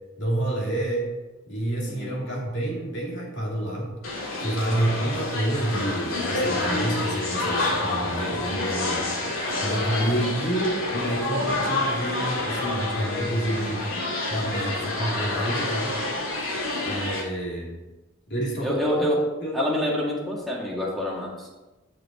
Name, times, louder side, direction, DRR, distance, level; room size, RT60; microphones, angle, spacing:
voice 1, 0.2-1.1 1.5-3.9 4.4-9.1 9.6-13.8 14.3-15.9 16.8-17.8 18.3-18.8 19.4-19.6, right 1 dB, 60° left, -3 dB, 2.6 m, -28 dB
voice 2, 1.9-2.2 4.7-4.8 18.6-19.2 19.5-21.5, left 1 dB, ahead, -4 dB, 1.9 m, -27 dB
sound 1, 4.0-17.2, left 2 dB, 85° left, 2.2 m, -28 dB
10.5 x 6.0 x 4.3 m, 1.1 s
head